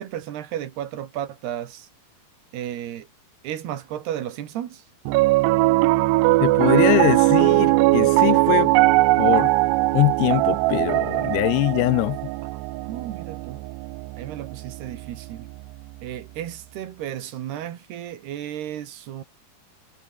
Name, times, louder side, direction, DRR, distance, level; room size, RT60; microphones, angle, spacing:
voice 1, 0.0-1.9 2.5-3.1 3.4-4.8 12.8-13.7 14.2-15.5 16.0-19.2, right 11 dB, 75° right, 3.9 m, -33 dB
Piano, 5.1-15.4, right 20 dB, 90° right, 2.7 m, -20 dB
voice 2, 6.4-8.7 9.2-9.5 9.9-12.2, left 22 dB, 80° left, 2.4 m, -22 dB
omnidirectional pair, 4.8 m